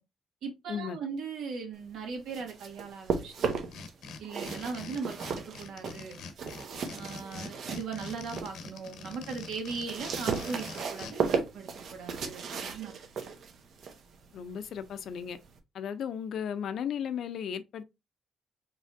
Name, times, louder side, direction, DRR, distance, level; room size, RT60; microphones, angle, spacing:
voice 1, 0.4-3.6 4.2-6.2 6.9-13.0, right 5 dB, 75° right, 1.9 m, -39 dB
sound 1, 2.1-3.9 4.2-8.6 9.0-15.6, right 5 dB, 55° right, 0.9 m, -36 dB
sound 2, 3.5-11.1, left 4 dB, 90° left, 0.9 m, -44 dB
voice 2, 14.3-15.4 15.7-17.9, left 8 dB, 60° left, 0.5 m, -35 dB
5.0 x 3.1 x 2.6 m
cardioid pair, 160°, 0 cm